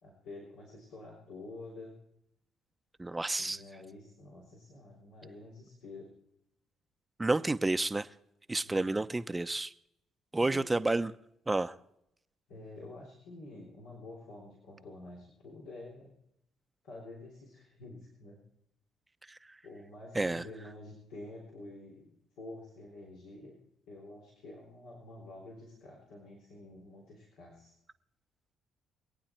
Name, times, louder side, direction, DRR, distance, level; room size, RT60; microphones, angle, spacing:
voice 1, 0.0-2.0 3.4-6.1 8.6-9.0 10.3-11.0 12.5-16.1 16.8-18.4 19.6-23.6 23.9-27.7, left 2 dB, 85° left, -4 dB, 3.7 m, -49 dB
voice 2, 3.0-3.6 7.2-8.1 8.5-9.7 10.3-11.1 11.5-11.7 19.3-19.4 20.1-20.4, right 2 dB, 20° right, 12 dB, 0.7 m, -30 dB
23.5 x 9.1 x 4.5 m, 0.80 s
supercardioid pair, 65°, 0 cm